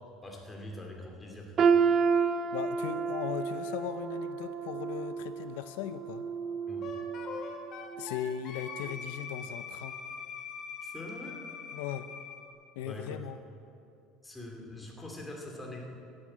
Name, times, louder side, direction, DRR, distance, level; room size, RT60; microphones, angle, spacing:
voice 1, 0.0-1.7 6.7-6.9 10.8-11.4 12.8-13.2 14.2-15.8, left 1 dB, 10° left, -1 dB, 2.6 m, -43 dB
sound 1, 1.6-7.5 7.9-8.2 8.9-9.0, right 6 dB, 30° right, 0.6 m, -30 dB
voice 2, 2.5-6.3 8.0-10.0 11.7-12.1 12.8-13.4, left 10 dB, 90° left, 12 dB, 0.6 m, -38 dB
Wind instrument woodwind instrument, 6.8-12.5, left 5 dB, 35° left, 2.2 m, -42 dB
15.5 x 9.9 x 8.7 m, 2.5 s
cardioid pair, 160°, 0 cm